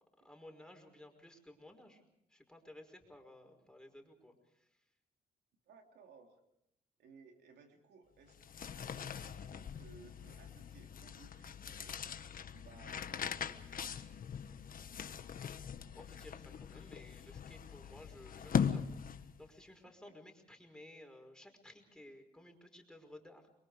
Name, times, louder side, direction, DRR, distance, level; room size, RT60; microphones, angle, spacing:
voice 1, 0.2-2.0 2.3-4.8 16.0-23.5, left 1 dB, 5° left, 3 dB, 5.5 m, -56 dB
voice 2, 5.7-6.4 7.0-12.0 12.5-14.0 19.8-20.1, right 5 dB, 85° right, 3 dB, 3.1 m, -61 dB
sound 1, 8.3-19.5, left 7 dB, 60° left, 1.4 m, -41 dB
30.0 x 23.0 x 5.0 m, 0.78 s
cardioid pair, 85°, 17 cm